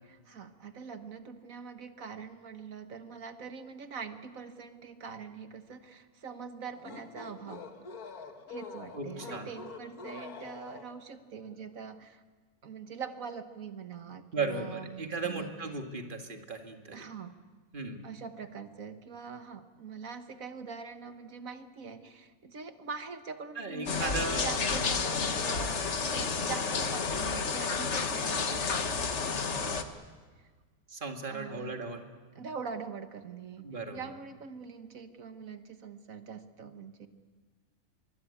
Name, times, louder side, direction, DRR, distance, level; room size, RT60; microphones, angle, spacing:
voice 1, 0.0-7.7 8.5-12.2 12.6-15.5 16.9-17.3 18.0-29.8 31.3-31.8 32.4-33.6 33.9-37.1, right 6 dB, 70° right, 8 dB, 1.7 m, -43 dB
sound 1, 6.6-11.1, left 5 dB, 90° left, 2.1 m, -46 dB
voice 2, 8.9-9.5 14.3-17.1 17.7-18.0 23.6-24.5 24.8-25.0 30.9-32.1 33.6-34.0, right 3 dB, 35° right, 4 dB, 2.2 m, -36 dB
sound 2, 23.9-29.8, left 5 dB, 55° left, 1.7 m, -31 dB
24.5 x 23.5 x 8.5 m, 1.4 s
omnidirectional pair, 1.5 m